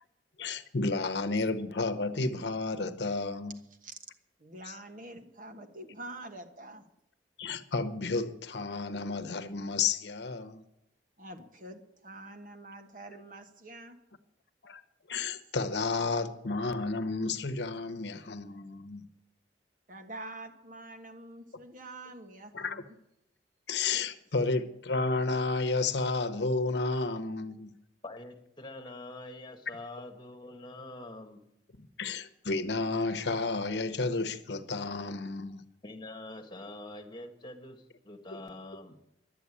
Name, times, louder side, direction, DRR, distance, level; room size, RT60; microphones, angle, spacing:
voice 1, 0.4-3.6 4.6-4.8 7.4-10.6 14.6-14.8 15.1-19.1 22.5-22.8 23.7-27.7 31.8-35.7 38.3-38.4, left 3 dB, 75° left, 0.9 m, -32 dB
voice 2, 4.4-6.8 11.2-14.0 19.9-22.9, right 2 dB, 50° right, 1.3 m, -46 dB
voice 3, 28.0-31.4 35.8-39.0, left 2 dB, 25° left, 1.5 m, -45 dB
11.5 x 8.3 x 9.8 m
head